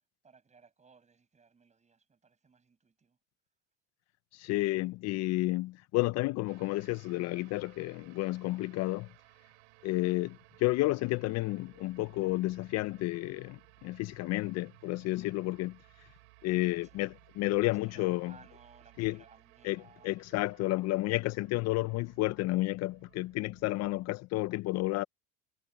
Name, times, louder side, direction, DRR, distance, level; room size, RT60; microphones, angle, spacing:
voice 1, 0.2-3.2 16.1-16.2 16.6-17.0 17.5-20.1, right 5 dB, 20° right, 6.2 m, -61 dB
voice 2, 4.3-9.1 9.8-16.1 16.4-18.3 19.0-19.2 19.6-25.0, left 19 dB, 50° left, 0.6 m, -31 dB
sound 1, 6.5-24.1, right 24 dB, 85° right, 4.2 m, -61 dB
supercardioid pair, 120°, 34 cm